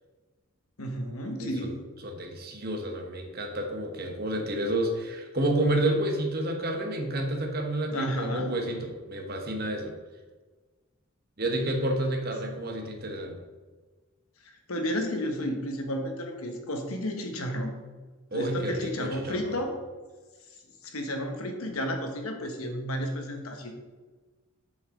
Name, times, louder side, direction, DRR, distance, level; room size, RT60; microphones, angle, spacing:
voice 1, 0.8-1.8 7.9-8.5 14.4-17.7 18.3-19.7 20.8-23.7, equal, 90° left, 4 dB, 1.2 m, -32 dB
voice 2, 1.4-1.7 2.0-9.9 11.4-13.4 18.3-19.5, right 1 dB, 45° right, 3 dB, 1.1 m, -30 dB
7.8 x 5.6 x 3.8 m, 1.3 s
head